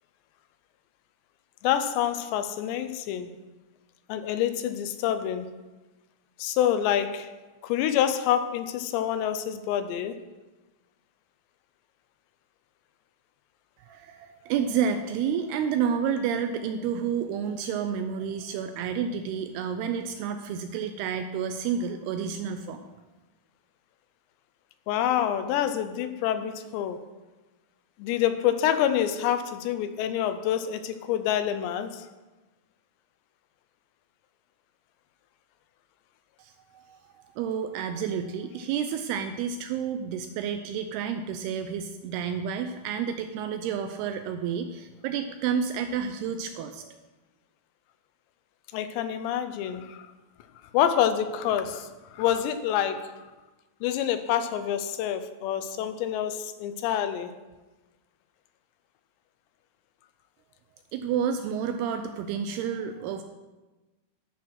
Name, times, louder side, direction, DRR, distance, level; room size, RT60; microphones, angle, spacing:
voice 1, 1.6-3.3 4.1-5.5 6.4-7.3 7.6-10.2 24.9-27.0 28.0-32.1 48.7-50.0 50.7-53.2 53.8-57.3, left 10 dB, 85° left, 10 dB, 2.8 m, -27 dB
voice 2, 13.9-22.8 36.4-37.0 37.4-47.0 60.9-63.2, right 7 dB, 85° right, 7 dB, 2.3 m, -30 dB
11.5 x 5.8 x 6.2 m, 1.2 s
omnidirectional pair, 5.1 m